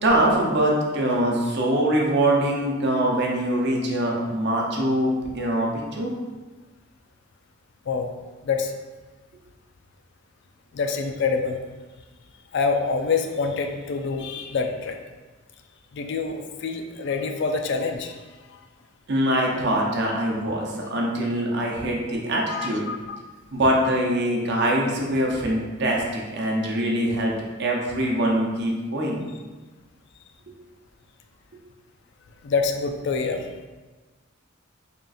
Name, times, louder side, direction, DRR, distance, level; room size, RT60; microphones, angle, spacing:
voice 1, 0.0-6.1 19.1-22.8 23.5-27.3 27.6-29.2, right 1 dB, 55° right, -1 dB, 0.7 m, -23 dB
voice 2, 10.7-11.6 12.5-15.0 15.9-18.2 22.5-23.2 32.4-33.5, left 4 dB, 60° left, 5 dB, 0.3 m, -26 dB
3.6 x 2.4 x 4.0 m, 1.3 s
head